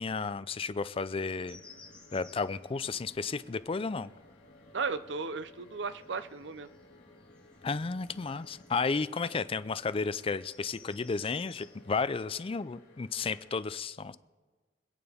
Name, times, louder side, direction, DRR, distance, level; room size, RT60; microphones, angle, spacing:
voice 1, 0.0-1.6 2.1-4.1 7.6-14.2, left 4 dB, 30° left, 14 dB, 0.4 m, -33 dB
sound 1, 1.1-13.6, left 2 dB, 75° left, 2.8 m, -59 dB
sound 2, 1.3-12.2, left 3 dB, 5° left, 2.0 m, -60 dB
sound 3, 1.4-8.8, equal, 45° left, 2.0 m, -61 dB
voice 2, 4.7-6.7, right 4 dB, 75° right, 13 dB, 0.6 m, -35 dB
26.0 x 8.8 x 3.6 m, 1.3 s
head